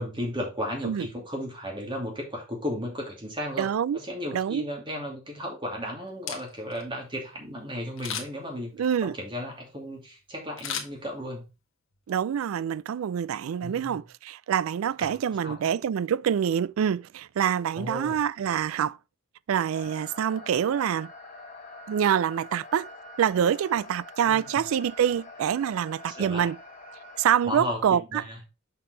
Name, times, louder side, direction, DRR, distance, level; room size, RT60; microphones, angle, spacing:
voice 1, 0.0-11.4 13.6-14.0 15.0-15.1 15.4-15.6 17.7-18.2 24.3-24.4 26.1-26.5 27.4-28.4, equal, 25° right, 2.7 m, -35 dB
voice 2, 3.6-4.0 4.3-4.6 8.8-9.2 12.1-19.0 19.5-21.1 21.9-22.9 23.2-26.6 27.2-28.5, right 8 dB, 80° right, 0.3 m, -26 dB
Camera, 6.1-6.8 8.0-8.5 10.6-11.5 11.9-12.0, left 7 dB, 70° left, 1.4 m, -36 dB
sound 1, 19.7-27.3, left 1 dB, 40° left, 2.3 m, -45 dB
6.8 x 5.6 x 3.9 m
head